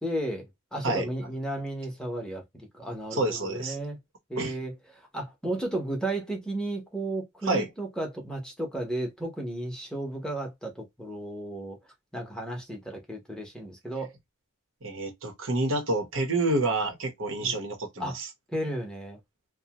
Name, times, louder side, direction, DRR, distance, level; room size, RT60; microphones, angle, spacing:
voice 1, 0.0-4.0 4.3-11.8 12.1-14.1 17.4-17.6 18.0-18.2 18.5-19.2, right 1 dB, 5° left, 0.8 m, -34 dB
voice 2, 3.1-3.8 4.4-4.6 7.5-7.7 14.8-18.3, right 2 dB, 70° right, 0.9 m, -28 dB
2.7 x 2.2 x 2.8 m
head